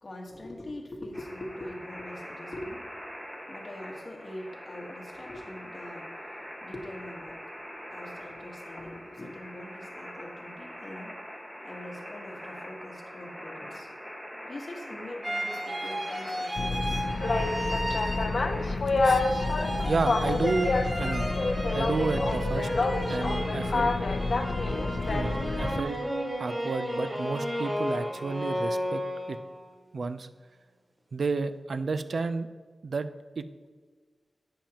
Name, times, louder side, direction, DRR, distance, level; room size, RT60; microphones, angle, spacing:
voice 1, 0.0-3.1 3.5-6.1 6.6-7.4 7.9-11.2 11.6-13.9 14.4-17.0, left 1 dB, 35° left, 0 dB, 1.5 m, -43 dB
sound 1, 1.1-18.8, equal, ahead, 1.6 m, -43 dB
sound 2, 15.2-18.6 19.0-29.6, equal, 20° right, 1.7 m, -33 dB
Boat Water vehicle, 16.6-25.8, left 3 dB, 60° left, 0.6 m, -28 dB
voice 2, 19.9-20.7 21.0-21.3 21.7-22.7 23.1-23.9 25.1-26.0 26.4-29.0 29.3-29.4 29.9-30.3 31.1-32.5 32.8-33.1 33.4-33.5, right 4 dB, 65° right, 11 dB, 0.4 m, -31 dB
10.5 x 8.8 x 2.9 m, 1.5 s
wide cardioid pair, 110°, 0 cm